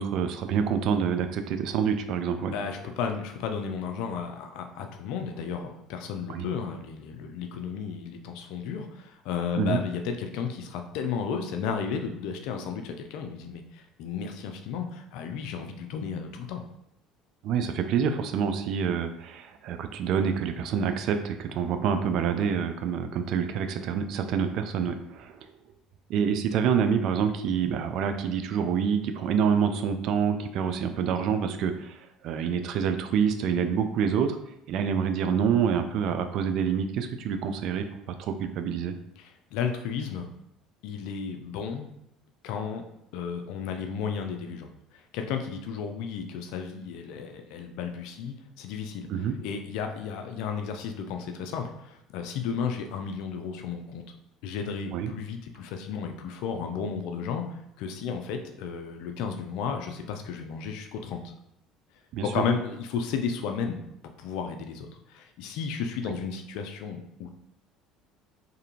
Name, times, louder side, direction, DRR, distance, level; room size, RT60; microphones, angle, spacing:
voice 1, 0.0-2.5 6.3-6.5 9.6-9.8 17.4-25.5 26.1-32.0 32.2-34.4 34.7-37.9 38.2-38.9 49.1-49.4 54.9-55.1 62.1-62.2, right 7 dB, 65° right, 8 dB, 0.3 m, -27 dB
voice 2, 2.5-16.6 39.2-40.3 40.8-41.9 42.4-42.8 43.1-49.1 49.4-54.0 54.4-61.3 62.2-67.3, left 6 dB, 70° left, 5 dB, 0.4 m, -33 dB
2.6 x 2.5 x 2.8 m, 0.81 s
hypercardioid pair, 70°, 0 cm